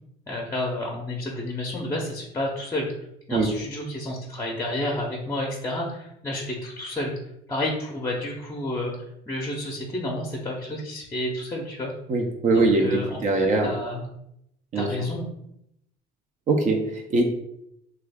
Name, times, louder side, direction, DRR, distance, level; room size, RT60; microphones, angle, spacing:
voice 1, 0.3-2.9 3.3-7.1 7.5-8.9 9.3-11.9 12.5-14.1 14.7-15.2, left 1 dB, 15° left, -2 dB, 0.6 m, -30 dB
voice 2, 12.1-13.7 14.7-14.9 16.5-17.2, right 3 dB, 45° right, 2 dB, 0.5 m, -22 dB
3.0 x 2.3 x 3.4 m, 0.77 s
cardioid pair, 110°, 17 cm